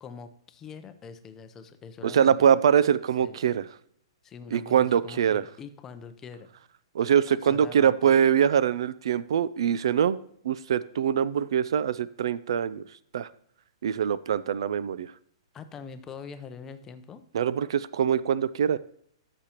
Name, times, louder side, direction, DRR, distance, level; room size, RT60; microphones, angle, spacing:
voice 1, 0.0-2.5 3.2-3.4 4.2-6.5 7.3-8.1 15.5-17.2, left 6 dB, 15° left, 9 dB, 0.6 m, -44 dB
voice 2, 2.0-3.7 4.5-5.4 6.9-10.2 10.4-12.8 13.1-13.3 13.8-15.1 17.3-18.8, right 8 dB, 65° right, 18 dB, 0.4 m, -23 dB
13.5 x 6.7 x 3.0 m, 0.68 s
hypercardioid pair, 160°, 3 cm